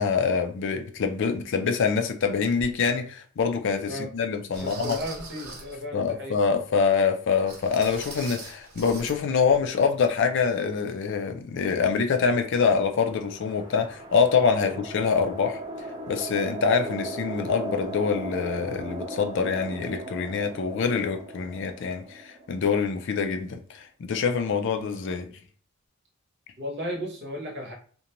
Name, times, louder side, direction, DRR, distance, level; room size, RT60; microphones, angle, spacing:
voice 1, 0.0-5.0 5.9-15.6 16.1-25.3, left 5 dB, 60° left, 0.4 m, -25 dB
sound 1, 2.6-2.7 3.4-3.5 4.5-5.8 7.5-9.2 9.4-9.6 10.1-10.2, right 3 dB, 85° right, 0.9 m, -41 dB
voice 2, 4.6-6.4 14.6-14.8 26.6-27.7, equal, 55° right, 0.9 m, -35 dB
sound 2, 12.8-23.1, right 1 dB, 25° right, 0.4 m, -38 dB
2.5 x 2.2 x 2.9 m
head